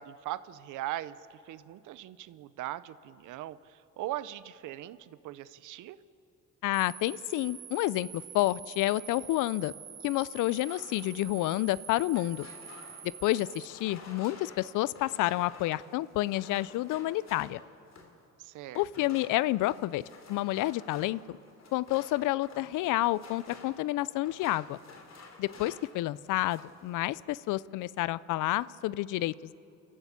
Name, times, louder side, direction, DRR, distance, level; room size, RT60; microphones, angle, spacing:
voice 1, 0.0-6.0 18.4-18.8, right 14 dB, 85° right, 16 dB, 0.7 m, -40 dB
voice 2, 6.6-9.7 10.0-12.5 13.2-17.6 18.7-20.0 20.3-21.4 21.7-24.8 25.4-29.5, left 16 dB, 90° left, 20 dB, 0.5 m, -29 dB
sound 1, 6.7-13.7, right 8 dB, 50° right, 1.4 m, -46 dB
sound 2, 10.5-18.2 18.7-26.0 26.3-26.8, left 3 dB, 60° left, 3.3 m, -52 dB
29.5 x 13.5 x 8.3 m, 2.8 s
cardioid pair, 90°, 30 cm